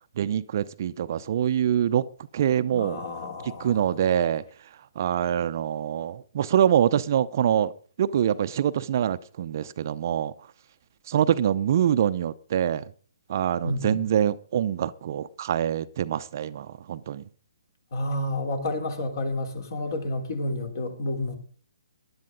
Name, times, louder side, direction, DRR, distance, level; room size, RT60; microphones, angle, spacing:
voice 1, 0.2-2.1 2.3-3.0 3.4-4.7 5.0-10.3 11.1-12.9 13.3-17.2, right 9 dB, 45° right, 0.6 m, -25 dB
voice 2, 2.7-3.8 13.6-14.1 17.9-21.4, left 1 dB, 50° left, 3.5 m, -30 dB
19.0 x 11.5 x 3.9 m
figure-of-eight pair, 135°, 2 cm